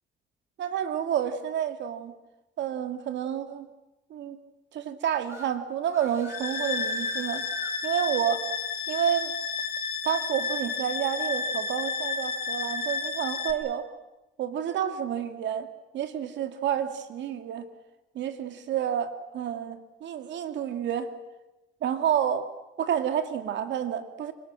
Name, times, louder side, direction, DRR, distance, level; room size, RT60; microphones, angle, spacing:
voice 1, 0.6-2.1 2.6-3.7 4.1-4.4 4.7-7.4 7.8-8.4 8.9-9.3 10.0-13.9 14.4-15.7 15.9-17.7 18.1-21.1 21.8-22.5 22.8-24.3, right 9 dB, 65° right, 8 dB, 2.5 m, -29 dB
sound 1, 5.3-5.5 5.9-7.7, right 1 dB, 15° right, 4.2 m, -41 dB
sound 2, 6.3-13.5, left 5 dB, 50° left, 4.8 m, -31 dB
26.5 x 25.0 x 7.7 m, 1.0 s
cardioid pair, 160°, 20 cm